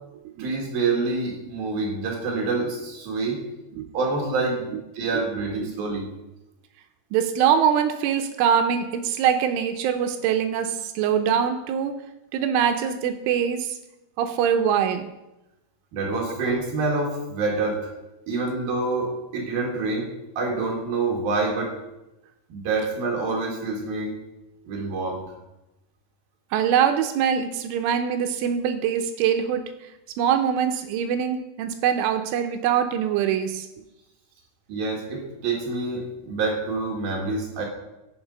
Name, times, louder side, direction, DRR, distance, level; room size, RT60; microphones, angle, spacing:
voice 1, 0.4-3.4 3.9-6.1 15.9-17.9 18.3-21.8 22.5-24.2 24.7-25.2 34.7-37.7, right 3 dB, 60° right, -1 dB, 2.9 m, -27 dB
voice 2, 7.1-12.0 12.3-13.8 14.2-15.1 26.5-29.9 30.2-33.7, right 8 dB, 80° right, 7 dB, 3.0 m, -23 dB
16.0 x 7.4 x 5.3 m, 0.95 s
omnidirectional pair, 6.0 m